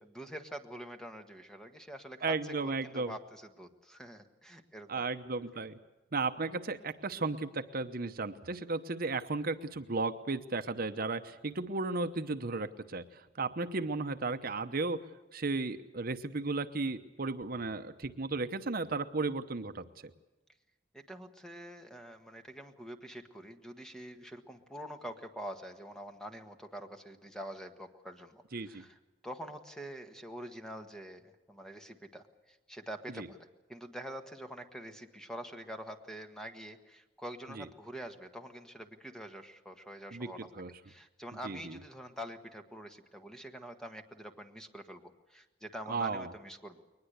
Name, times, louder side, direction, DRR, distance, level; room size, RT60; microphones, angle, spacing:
voice 1, 0.0-5.0 20.9-33.4 33.7-46.8, equal, 5° left, 6 dB, 1.5 m, -46 dB
voice 2, 2.2-3.1 4.9-5.8 6.1-15.1 15.3-19.9 28.5-28.8 33.2-33.3 37.6-37.7 40.1-40.3 40.6-40.7 41.4-41.8 45.9-46.3, right 3 dB, 55° right, 10 dB, 0.9 m, -34 dB
22.0 x 20.5 x 8.1 m, 1.1 s
head